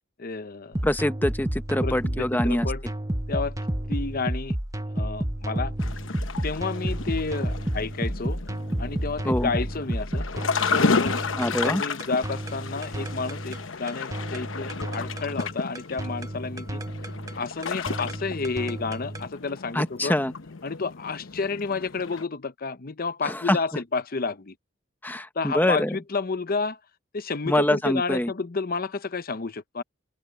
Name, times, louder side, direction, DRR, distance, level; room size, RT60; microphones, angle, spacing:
voice 1, 0.2-0.9 1.8-2.8 3.3-3.6 3.9-4.6 4.9-5.7 6.4-8.4 8.8-10.3 10.7-16.8 17.3-20.1 20.6-24.6 25.3-26.8 27.1-29.8, left 4 dB, 45° left, 0.8 m, -30 dB
sound 1, 0.7-19.3, right 1 dB, 15° right, 1.1 m, -31 dB
voice 2, 0.8-2.7 9.2-9.5 11.4-11.8 19.7-20.3 23.2-23.6 25.0-26.0 27.5-28.3, left 1 dB, 10° left, 1.0 m, -24 dB
sound 2, 5.8-22.2, left 4 dB, 70° left, 1.0 m, -32 dB
open air
head